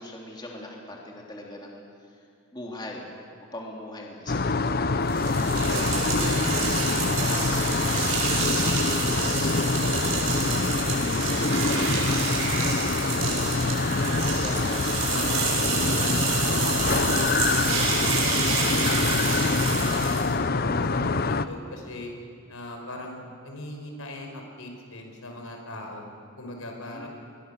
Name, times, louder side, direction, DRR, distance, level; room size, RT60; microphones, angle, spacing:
voice 1, 0.0-1.8 2.5-3.1 3.5-5.1 14.4-15.1 26.8-27.1, left 1 dB, 20° left, -2 dB, 3.2 m, -40 dB
sound 1, 4.3-21.5, left 3 dB, 45° left, 0.7 m, -25 dB
sound 2, 5.1-20.4, right 5 dB, 85° right, 6.8 m, -29 dB
voice 2, 5.5-7.7 8.1-9.3 9.7-13.5 14.0-14.6 15.1-18.4 18.8-22.1 22.5-26.1 26.4-27.1, left 1 dB, 85° left, 2 dB, 5.0 m, -38 dB
29.5 x 22.0 x 6.8 m, 2.3 s
head